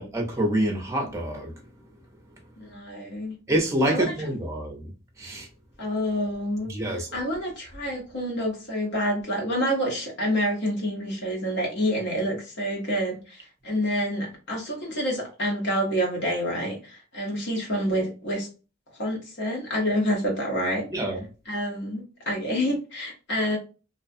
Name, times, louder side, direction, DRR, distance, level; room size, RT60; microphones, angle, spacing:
voice 1, 0.0-1.5 3.5-4.9 5.2-5.5 6.7-7.1 20.9-21.2, right 1 dB, 15° right, 0.5 m, -26 dB
voice 2, 2.6-3.4 3.9-4.1 5.8-18.5 19.0-20.9 21.5-23.6, equal, 60° left, 1.0 m, -28 dB
2.4 x 2.2 x 2.5 m
head